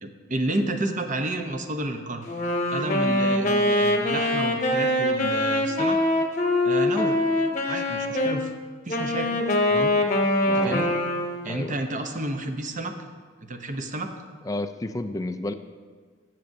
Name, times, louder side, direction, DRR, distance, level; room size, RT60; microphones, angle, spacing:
voice 1, 0.0-2.2 2.7-6.0 6.6-7.2 7.7-8.5 8.9-9.4 9.7-9.9 10.5-10.9 11.4-12.9 13.4-14.1, right 1 dB, 40° right, 5 dB, 0.8 m, -30 dB
Wind instrument woodwind instrument, 2.2-8.4 8.9-11.5, left 1 dB, 35° left, 0.9 m, -23 dB
voice 2, 10.5-10.9 11.5-11.7 14.4-15.5, left 2 dB, 15° left, 8 dB, 0.3 m, -31 dB
15.0 x 7.6 x 2.7 m, 1.5 s
head